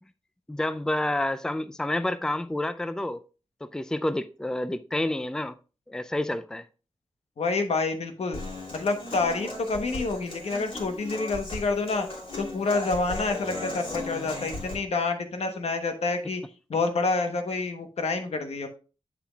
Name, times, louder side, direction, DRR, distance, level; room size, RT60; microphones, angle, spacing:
voice 1, 0.5-3.2 3.6-5.5 5.9-6.7, left 1 dB, 5° left, 0.4 m, -29 dB
voice 2, 7.4-8.4 8.7-12.1 12.4-16.4 16.7-18.7, left 3 dB, 80° left, 1.1 m, -28 dB
Human voice / Acoustic guitar, 8.3-14.7, left 2 dB, 60° left, 3.2 m, -37 dB
7.7 x 6.9 x 2.3 m
cardioid pair, 65°, 11 cm